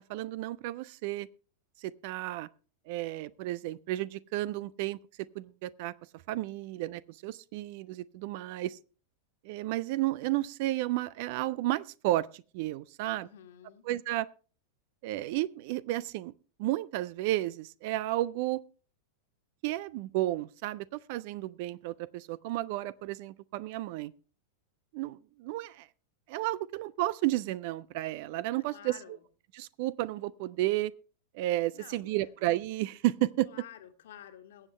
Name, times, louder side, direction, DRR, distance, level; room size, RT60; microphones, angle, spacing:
voice 1, 0.1-1.3 1.8-2.5 2.9-5.0 5.3-5.9 6.3-8.8 9.4-13.3 13.8-14.3 15.0-16.3 16.6-18.6 19.6-24.1 24.9-25.9 26.3-29.0 29.5-30.9 31.3-33.5, right 16 dB, 50° right, 0.5 m, -32 dB
voice 2, 13.0-13.9 28.7-29.2 31.7-32.3 33.4-34.7, left 10 dB, 60° left, 1.6 m, -51 dB
22.0 x 8.0 x 3.2 m
figure-of-eight pair, 90°, 0 cm